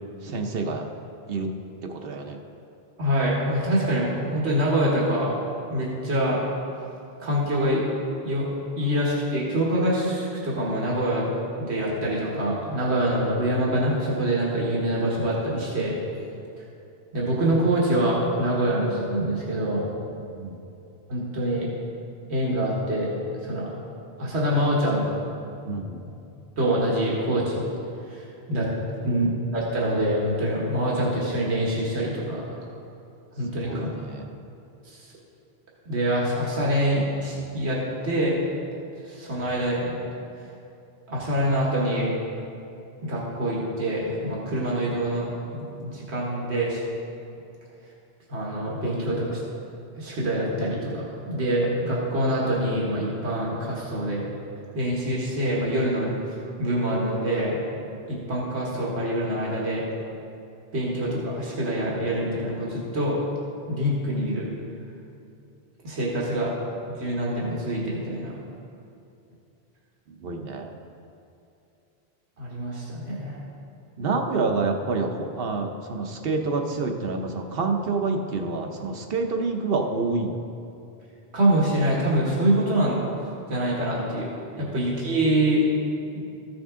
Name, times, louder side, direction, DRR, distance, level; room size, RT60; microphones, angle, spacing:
voice 1, 0.2-0.8 1.3-1.5 1.8-2.4 20.4-20.6 25.6-26.0 29.1-29.3 33.6-34.3 70.2-70.8 74.0-80.4 84.5-84.7, right 3 dB, 65° right, 4 dB, 1.0 m, -28 dB
voice 2, 3.0-5.3 5.7-6.4 7.2-7.8 8.2-11.3 11.6-15.9 17.1-19.8 21.1-21.7 22.3-23.1 23.4-23.7 24.2-25.0 26.6-27.6 28.1-28.7 29.0-32.4 33.4-33.9 34.8-35.0 35.9-38.4 39.1-40.0 41.1-42.1 43.0-46.8 48.3-49.4 50.0-54.2 54.7-56.1 56.6-57.6 58.1-59.8 60.7-63.2 63.7-64.5 65.8-66.5 67.0-68.4 72.4-73.4 81.3-83.0 83.5-84.3 84.6-85.6, right 1 dB, 90° right, -4 dB, 1.7 m, -25 dB
14.0 x 6.3 x 3.7 m, 2.6 s
omnidirectional pair, 1.1 m